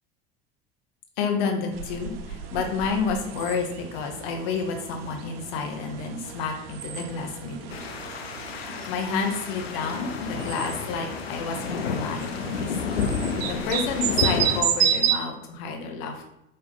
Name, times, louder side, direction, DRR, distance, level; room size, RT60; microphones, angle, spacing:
voice 1, 1.2-7.8 8.4-13.1 13.4-16.3, left 5 dB, 60° left, 3 dB, 1.0 m, -30 dB
sound 1, 1.7-15.2, right 9 dB, 75° right, 0.5 m, -31 dB
sound 2, 7.7-14.6, left 6 dB, 85° left, 0.5 m, -31 dB
4.8 x 3.0 x 3.4 m, 0.87 s
hypercardioid pair, 70°, 30 cm